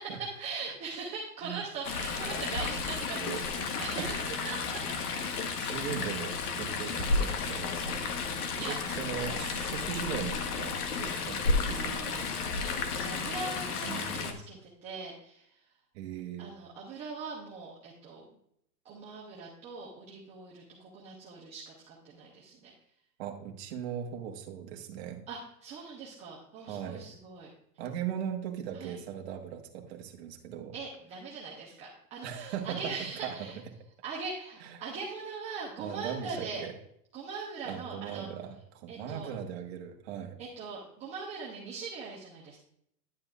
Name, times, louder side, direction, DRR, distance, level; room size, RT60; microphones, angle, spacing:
voice 1, 0.0-5.0 8.6-8.8 9.2-9.6 11.7-15.5 16.4-18.3 18.8-22.7 25.3-27.5 28.7-29.0 30.7-33.6 34.0-36.6 37.1-38.3 38.9-39.3 40.4-42.6, right 4 dB, 15° right, -4 dB, 0.7 m, -41 dB
Chatter / Stream, 1.8-14.3, left 4 dB, 65° left, 1.3 m, -32 dB
voice 2, 2.5-2.8 3.1-3.4 4.0-4.2 4.5-4.6 5.1-8.1 8.4-12.3 13.8-14.4 15.9-16.5 23.2-25.2 26.6-27.1 27.8-30.7 32.2-32.9 33.2-33.5 34.6-34.8 35.8-36.7 37.6-40.4, right 9 dB, 40° right, 3 dB, 1.3 m, -39 dB
10.5 x 7.4 x 2.4 m, 0.73 s
supercardioid pair, 160°, 49 cm